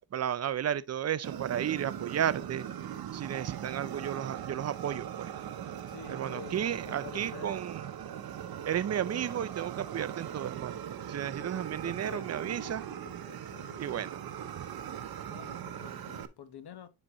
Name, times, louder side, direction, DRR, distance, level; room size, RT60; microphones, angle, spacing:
voice 1, 0.0-2.7 3.1-5.3 6.1-7.9 8.6-10.8 11.1-12.8 13.8-14.2 14.6-14.7, right 9 dB, 35° right, 0.4 m, -33 dB
Fire, 1.2-16.3, right 9 dB, 55° right, 0.8 m, -40 dB
voice 2, 5.9-7.6 11.2-12.8 13.3-14.1 15.3-16.9, left 8 dB, 60° left, 1.1 m, -49 dB
9.8 x 4.0 x 3.0 m
cardioid pair, 120°, 44 cm